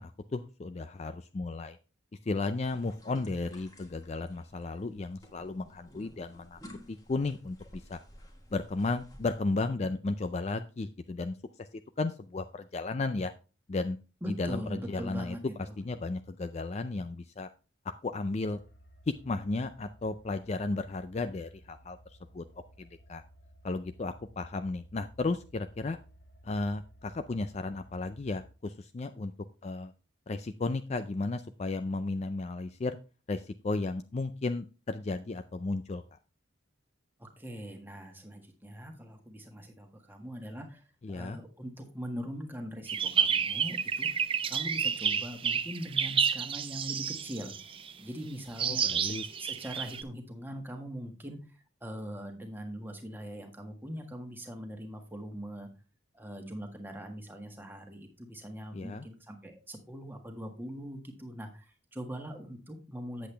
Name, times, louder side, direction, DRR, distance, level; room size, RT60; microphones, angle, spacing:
voice 1, 0.0-1.8 2.3-6.6 6.9-7.6 7.9-8.0 8.5-11.7 12.0-13.3 13.7-14.0 14.3-15.4 15.8-17.5 18.0-18.6 19.1-22.0 22.3-22.4 22.8-23.2 23.6-26.0 26.4-29.3 29.6-29.9 30.3-33.0 33.3-36.0 41.0-41.4 48.6-49.2 58.7-59.1, left 3 dB, 35° left, 10 dB, 0.4 m, -34 dB
sound 1, 2.6-9.4, equal, 20° left, 1.4 m, -53 dB
voice 2, 14.2-15.8 37.2-44.1 44.5-47.5 48.0-55.7 56.1-63.3, equal, 10° right, 3 dB, 1.5 m, -42 dB
sound 2, 18.5-28.5, equal, 50° left, 1.4 m, -57 dB
sound 3, 42.9-47.9 48.6-50.0, right 7 dB, 25° right, 0.4 m, -30 dB
8.4 x 7.9 x 3.3 m, 0.33 s
head